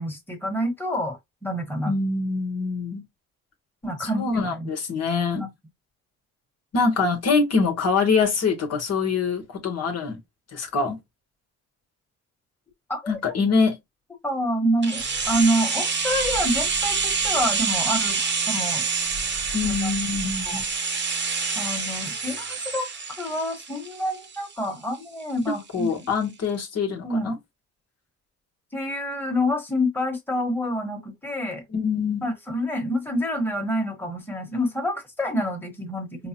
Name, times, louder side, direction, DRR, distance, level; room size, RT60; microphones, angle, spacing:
voice 1, 0.0-1.9 3.8-4.7 5.3-5.5 12.9-13.2 14.2-18.2 18.5-18.8 19.5-19.9 20.4-20.6 21.5-26.1 27.0-27.3 28.7-31.6 32.2-36.3, equal, 5° left, 1.2 m, -27 dB
voice 2, 1.8-3.0 4.0-5.4 6.7-10.2 10.5-11.0 13.1-13.8 19.5-20.7 25.5-27.4 31.7-32.2, left 4 dB, 55° left, 1.1 m, -24 dB
sound 1, 14.8-24.7 24.9-25.0, right 5 dB, 40° right, 0.9 m, -27 dB
4.7 x 2.0 x 2.9 m
cardioid pair, 90°, 30 cm